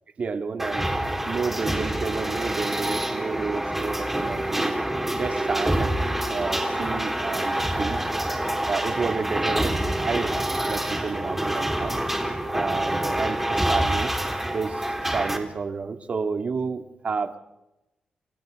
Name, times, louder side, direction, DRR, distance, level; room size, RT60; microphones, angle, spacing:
voice 1, 0.2-0.8 1.3-4.7 5.1-5.9 6.3-8.0 8.7-12.0 12.5-14.1 14.5-17.4, right 5 dB, 55° right, 6 dB, 2.3 m, -30 dB
sound 1, 0.6-15.4, right 1 dB, 10° right, 4.2 m, -26 dB
29.5 x 28.0 x 3.8 m, 0.93 s
cardioid pair, 60°, 3 cm